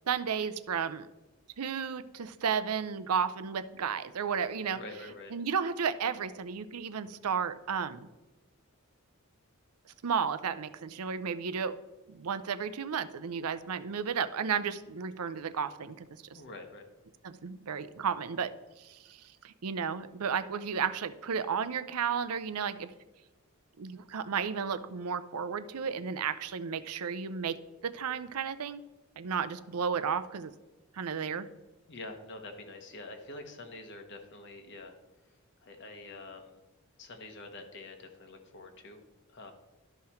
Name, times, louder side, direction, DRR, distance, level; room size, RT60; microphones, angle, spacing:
voice 1, 0.1-1.1 1.6-4.8 5.3-8.1 10.0-11.7 12.1-16.4 17.2-18.5 18.8-22.9 23.8-27.6 27.8-28.8 29.2-30.5 30.9-31.5, right 6 dB, 85° right, 13 dB, 0.5 m, -33 dB
voice 2, 4.7-5.3 16.3-16.9 31.9-34.9 35.6-36.6 37.0-39.0 39.3-39.5, left 2 dB, 55° left, 5 dB, 1.1 m, -46 dB
12.0 x 5.7 x 4.3 m, 1.1 s
head